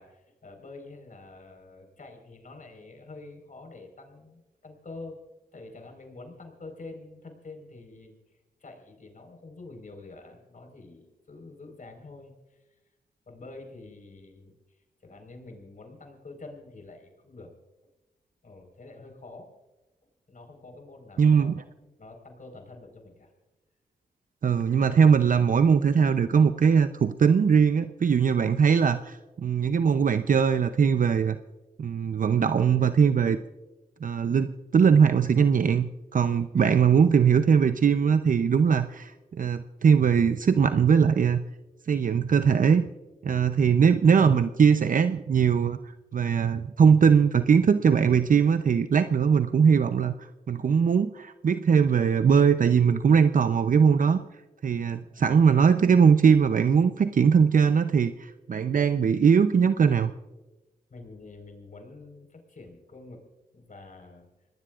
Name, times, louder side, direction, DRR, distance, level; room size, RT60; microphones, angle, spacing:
voice 1, 0.0-5.2 5.5-12.7 13.3-17.5 18.4-19.5 20.3-23.3 54.9-55.2 60.9-63.2 63.5-64.3, left 3 dB, 55° left, 3 dB, 4.6 m, -47 dB
voice 2, 21.2-21.6 24.4-31.4 31.8-33.4 34.0-41.4 41.9-42.8 43.2-50.1 50.5-54.2 54.6-60.1, right 6 dB, 60° right, 10 dB, 0.7 m, -21 dB
26.0 x 19.0 x 2.5 m, 1.1 s
cardioid pair, 45°, 16 cm